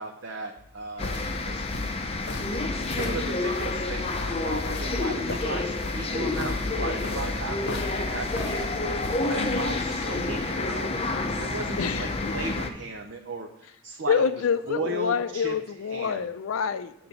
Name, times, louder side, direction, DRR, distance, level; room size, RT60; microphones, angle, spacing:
voice 1, 0.0-2.0 2.4-14.4 14.7-15.6 15.9-16.3, right 3 dB, 60° right, 1 dB, 0.7 m, -36 dB
sound 1, 0.6-9.2, left 2 dB, 50° left, 0.9 m, -36 dB
sound 2, 1.0-12.7, left 2 dB, 30° left, 0.6 m, -29 dB
voice 2, 9.3-9.8 11.8-12.4 14.1-17.1, left 6 dB, 70° left, 12 dB, 0.4 m, -27 dB
8.7 x 3.9 x 7.0 m, 0.79 s
head